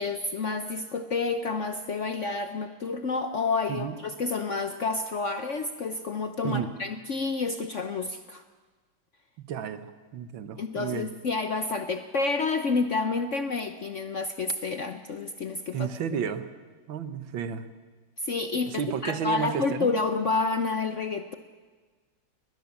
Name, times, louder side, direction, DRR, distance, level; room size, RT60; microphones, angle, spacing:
voice 1, 0.0-8.4 10.6-15.9 18.2-18.7 19.0-21.4, left 4 dB, 55° left, 8 dB, 0.9 m, -29 dB
voice 2, 9.4-11.1 15.7-16.5 16.9-17.7 18.7-19.9, right 8 dB, 75° right, 11 dB, 1.8 m, -32 dB
21.0 x 19.5 x 7.2 m, 1.4 s
omnidirectional pair, 2.2 m